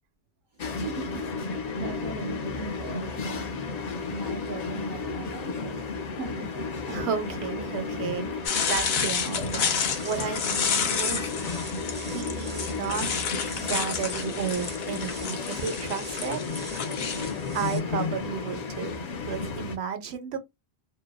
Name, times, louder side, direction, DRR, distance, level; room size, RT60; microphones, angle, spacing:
voice 1, 0.5-3.6 4.1-6.7 13.5-13.6, right 3 dB, 55° right, 0.7 m, -39 dB
sound 1, 0.6-19.8, left 4 dB, 50° left, 0.5 m, -33 dB
voice 2, 6.9-11.3 12.0-13.1 13.5-16.4 17.5-20.4, right 7 dB, 90° right, 0.9 m, -33 dB
sound 2, 8.5-17.3, left 6 dB, 75° left, 0.8 m, -30 dB
sound 3, 9.7-17.8, right 1 dB, 15° right, 0.5 m, -44 dB
2.6 x 2.1 x 2.3 m
omnidirectional pair, 1.1 m